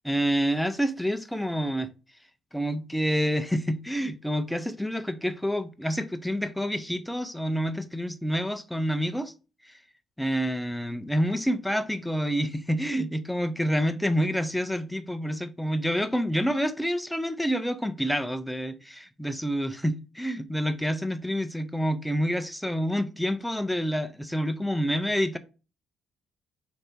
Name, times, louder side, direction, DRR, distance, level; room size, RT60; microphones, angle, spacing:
voice 1, 0.0-1.9 2.5-9.3 9.6-9.7 10.2-25.4, equal, 5° left, 0.4 m, -28 dB
3.2 x 2.6 x 4.3 m
cardioid pair, 90°, 0 cm